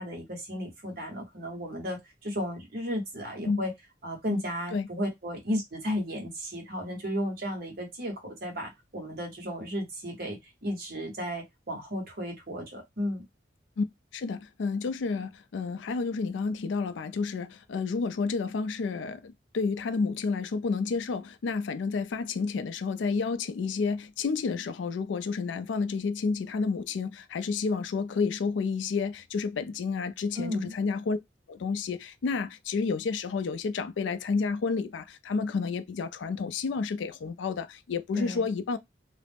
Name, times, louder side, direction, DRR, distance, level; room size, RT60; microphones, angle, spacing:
voice 1, 0.0-3.7 4.0-13.2 30.4-30.7 38.1-38.5, equal, 55° right, 1.0 m, -34 dB
voice 2, 14.1-31.2 31.5-38.8, left 4 dB, 80° left, 0.4 m, -30 dB
2.3 x 2.0 x 3.3 m
head